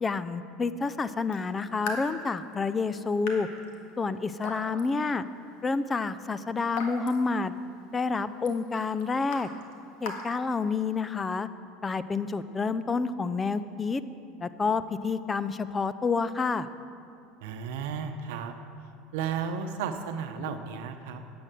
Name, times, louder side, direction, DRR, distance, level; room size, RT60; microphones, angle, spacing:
voice 1, 0.0-3.5 4.0-5.2 5.6-7.5 7.9-9.5 10.0-11.5 11.8-14.0 14.4-16.7, left 4 dB, 20° left, 14 dB, 0.5 m, -29 dB
Raindrop / Drip, 1.2-11.1, left 2 dB, 75° left, 1.8 m, -43 dB
voice 2, 17.4-18.5 19.1-21.2, right 6 dB, 80° right, 7 dB, 0.8 m, -33 dB
10.5 x 7.8 x 7.6 m, 2.5 s
supercardioid pair, 105°, 0 cm